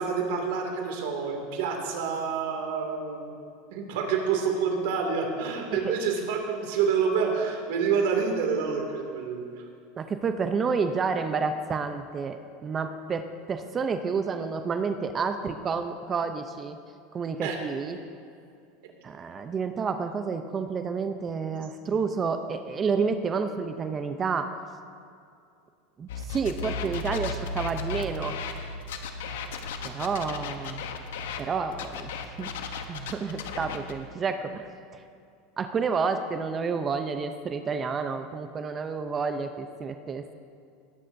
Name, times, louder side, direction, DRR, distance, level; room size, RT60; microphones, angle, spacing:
voice 1, 0.0-3.3 3.7-9.5 17.4-17.6, right 6 dB, 75° right, 1 dB, 2.4 m, -28 dB
voice 2, 10.0-16.8 17.1-18.0 19.0-24.5 26.0-28.4 29.8-30.8 31.4-32.1 32.4-32.5 32.9-35.0 35.6-40.3, right 5 dB, 25° right, 8 dB, 0.6 m, -30 dB
sound 1, 26.1-31.4 31.7-33.9, left 5 dB, 85° left, 0.9 m, -35 dB
19.5 x 10.5 x 2.7 m, 2.4 s
supercardioid pair, 130°, 0 cm